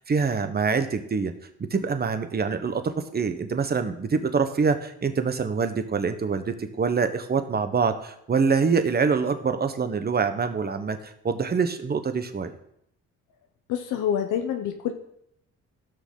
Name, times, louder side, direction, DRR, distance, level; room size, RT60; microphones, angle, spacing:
voice 1, 0.0-1.3 1.7-12.5, right 5 dB, 30° right, 9 dB, 1.1 m, -25 dB
voice 2, 13.7-14.9, left 9 dB, 85° left, 5 dB, 0.9 m, -27 dB
15.5 x 6.3 x 3.8 m, 0.74 s
cardioid pair, 90°, 30 cm